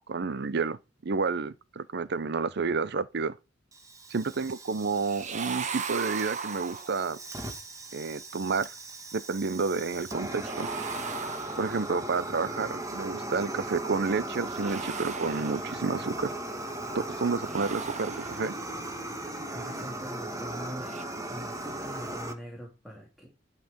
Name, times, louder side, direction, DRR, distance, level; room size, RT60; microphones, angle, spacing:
voice 1, 0.1-3.4 4.1-7.2 7.9-8.7 9.1-10.7 11.6-16.3 16.9-18.5, right 4 dB, 55° right, 0.6 m, -30 dB
Fire, 3.7-22.3, right 1 dB, 15° right, 1.6 m, -38 dB
sound 1, 5.0-7.2 10.4-12.1 14.5-16.0 17.4-18.8 20.8-21.0, right 6 dB, 40° right, 1.0 m, -38 dB
voice 2, 19.5-23.3, equal, ahead, 3.1 m, -43 dB
11.5 x 5.9 x 5.2 m
head